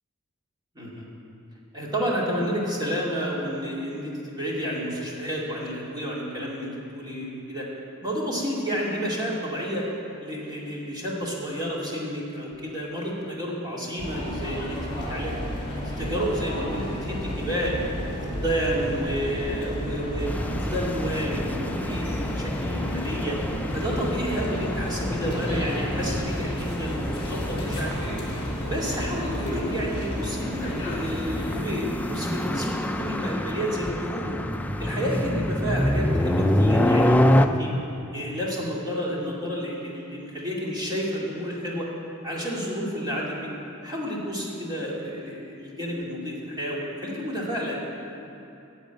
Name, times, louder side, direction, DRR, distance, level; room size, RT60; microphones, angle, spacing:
voice 1, 0.7-1.1 1.7-7.7 8.0-9.9 10.2-15.3 15.7-17.8 18.2-20.3 20.6-23.4 23.7-28.0 28.7-34.4 34.8-37.7 38.1-41.9 42.2-43.5 43.8-47.8, equal, 20° right, -5 dB, 2.3 m, -30 dB
sound 1, 14.0-31.7, equal, 25° left, 2.6 m, -32 dB
sound 2, 20.3-37.5, left 1 dB, 5° left, 0.4 m, -27 dB
10.5 x 7.2 x 9.1 m, 2.9 s
head